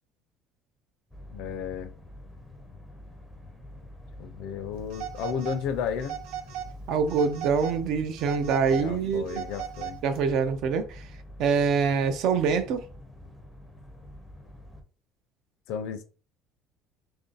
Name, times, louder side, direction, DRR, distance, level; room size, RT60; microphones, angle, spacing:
sound 1, 1.1-14.8, left 1 dB, ahead, 0.6 m, -46 dB
voice 1, 1.3-1.9 4.2-6.2 8.7-10.0 15.7-16.0, left 7 dB, 60° left, 0.5 m, -33 dB
Telephone, 4.9-5.6 6.0-6.7 7.1-7.8 8.2-10.2, right 10 dB, 80° right, 0.7 m, -37 dB
voice 2, 6.9-9.4 10.0-11.1 11.4-12.8, right 6 dB, 50° right, 0.4 m, -25 dB
3.1 x 2.6 x 3.9 m
cardioid pair, 175°, 0 cm